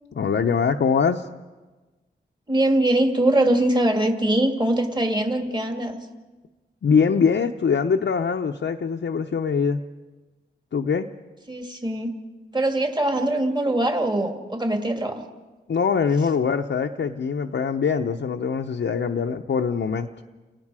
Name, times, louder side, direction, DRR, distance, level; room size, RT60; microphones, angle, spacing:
voice 1, 0.1-1.3 6.8-9.8 10.7-11.1 15.7-20.1, left 6 dB, 80° left, 3 dB, 0.8 m, -23 dB
voice 2, 2.5-6.0 11.5-12.2 12.5-15.2, right 1 dB, 25° right, 4 dB, 2.3 m, -22 dB
29.5 x 18.0 x 4.9 m, 1.2 s
wide cardioid pair, 70°, 19 cm